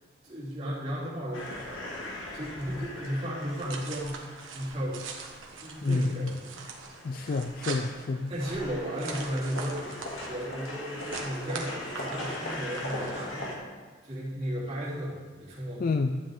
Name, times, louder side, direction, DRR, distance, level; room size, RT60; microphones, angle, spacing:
voice 1, 0.2-1.8 2.3-4.3 4.5-6.5 7.7-7.8 8.3-9.9 10.3-13.6 14.0-15.9, equal, 30° right, -8 dB, 3.1 m, -35 dB
sound 1, 1.3-4.7 5.2-5.3 5.6-8.1 8.4-13.6, left 1 dB, 90° left, 1.8 m, -40 dB
sound 2, 3.4-13.2, right 4 dB, 90° right, 1.3 m, -43 dB
voice 2, 5.8-6.3 7.0-8.3 15.8-16.2, left 3 dB, 45° left, 7 dB, 0.4 m, -29 dB
12.0 x 7.7 x 3.6 m, 1.4 s
head